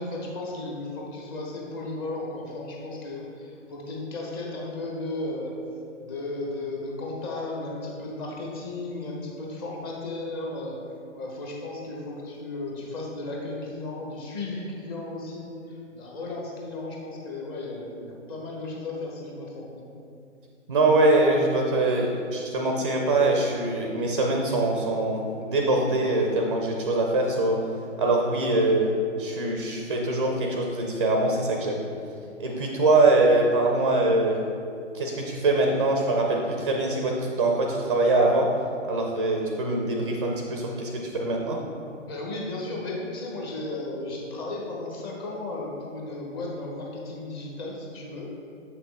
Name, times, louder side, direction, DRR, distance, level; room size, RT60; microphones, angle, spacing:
voice 1, 0.0-5.5 6.0-10.8 11.1-19.9 42.0-48.4, left 2 dB, 20° left, -2 dB, 0.8 m, -35 dB
voice 2, 20.7-27.7 28.0-31.8 32.4-34.4 34.9-38.5 38.9-41.6, right 2 dB, 25° right, 1 dB, 0.4 m, -23 dB
7.2 x 6.0 x 3.3 m, 2.5 s
figure-of-eight pair, 135°, 38 cm